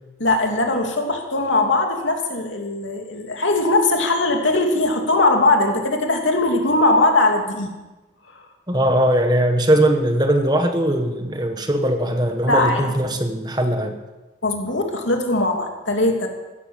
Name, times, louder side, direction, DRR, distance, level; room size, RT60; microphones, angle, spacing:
voice 1, 0.2-7.7 8.3-8.5 12.5-12.9 14.4-16.3, left 2 dB, 85° left, 3 dB, 2.7 m, -20 dB
voice 2, 8.7-13.9, right 1 dB, 20° right, 6 dB, 1.3 m, -20 dB
15.5 x 12.5 x 7.5 m, 1.1 s
head